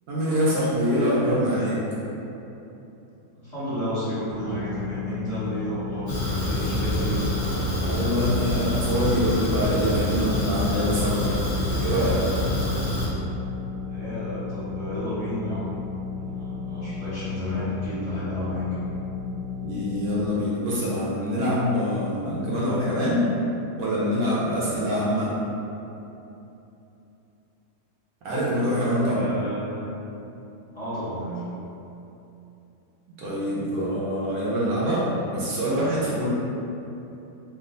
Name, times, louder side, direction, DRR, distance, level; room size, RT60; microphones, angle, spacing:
voice 1, 0.1-1.8 7.8-11.4 11.8-12.3 19.6-23.3 23.8-25.3 28.2-29.2 33.2-36.3, equal, 70° right, -8 dB, 1.2 m, -25 dB
voice 2, 3.4-7.2 13.9-15.7 16.2-18.7 29.0-29.8 30.7-31.4, equal, 20° left, -13 dB, 1.2 m, -31 dB
sound 1, 4.3-20.3, left 5 dB, 85° right, 1.4 m, -34 dB
Fire, 6.1-13.1, left 1 dB, 50° left, 0.8 m, -26 dB
3.2 x 2.5 x 3.8 m, 2.9 s
omnidirectional pair, 1.7 m